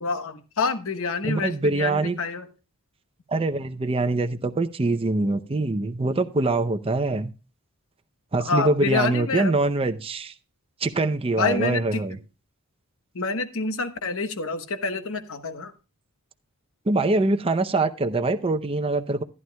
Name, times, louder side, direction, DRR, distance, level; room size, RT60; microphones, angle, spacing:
voice 1, 0.0-2.5 8.4-9.6 11.4-12.0 13.1-15.7, left 4 dB, 65° left, 1.1 m, -27 dB
voice 2, 1.2-2.2 3.3-7.3 8.3-10.3 10.8-12.2 16.9-19.2, right 2 dB, 25° right, 0.6 m, -24 dB
14.5 x 11.0 x 2.2 m
head